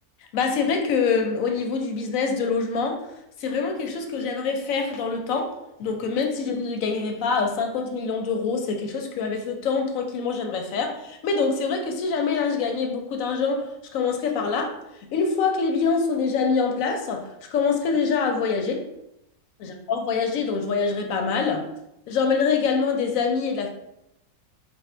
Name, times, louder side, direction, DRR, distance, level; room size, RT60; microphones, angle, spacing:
voice 1, 0.3-3.0 3.4-5.5 5.8-14.8 15.1-18.8 19.6-21.7 22.1-23.7, left 5 dB, 70° left, 4 dB, 0.9 m, -25 dB
3.5 x 2.3 x 4.3 m, 0.84 s
omnidirectional pair, 1.6 m